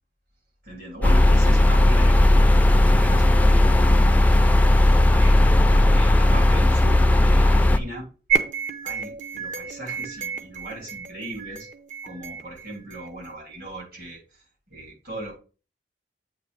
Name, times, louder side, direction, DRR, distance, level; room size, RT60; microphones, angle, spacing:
voice 1, 0.6-4.5 5.1-8.1 8.8-11.7 12.0-14.2 14.7-15.4, right 1 dB, 60° right, -2 dB, 3.4 m, -38 dB
sound 1, 1.0-7.8, left 1 dB, 10° left, 0.4 m, -16 dB
sound 2, 8.3-13.3, right 6 dB, 45° right, 0.9 m, -30 dB
8.0 x 3.2 x 5.2 m, 0.36 s
head